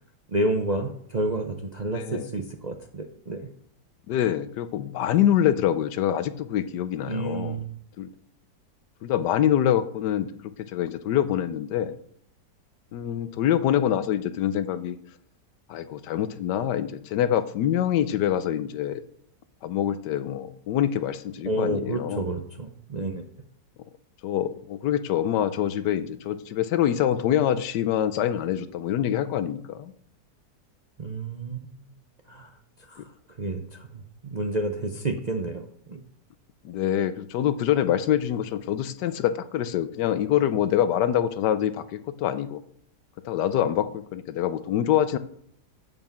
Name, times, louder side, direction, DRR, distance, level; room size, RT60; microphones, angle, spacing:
voice 1, 0.3-3.5 7.1-7.8 21.4-23.2 31.0-31.9 32.3-32.5 32.8-36.0, right 2 dB, 45° right, 4 dB, 0.5 m, -30 dB
voice 2, 1.9-2.3 4.1-7.6 8.0-8.1 9.0-12.0 12.9-15.0 15.7-19.0 19.6-22.2 24.2-29.9 33.0-33.1 36.6-42.6 43.2-45.2, left 10 dB, 80° left, 13 dB, 1.3 m, -25 dB
8.1 x 7.3 x 5.8 m, 0.66 s
omnidirectional pair, 1.8 m